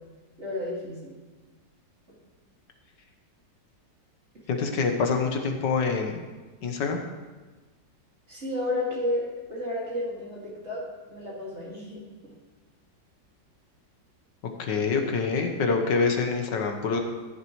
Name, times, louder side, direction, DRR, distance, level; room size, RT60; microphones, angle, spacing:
voice 1, 0.4-1.2 8.3-10.8 11.1-12.3, left 1 dB, 40° right, -6 dB, 2.6 m, -32 dB
voice 2, 4.5-6.3 6.6-7.0 14.6-17.0, left 4 dB, 75° left, 4 dB, 1.8 m, -26 dB
14.5 x 10.5 x 3.2 m, 1.3 s
omnidirectional pair, 1.9 m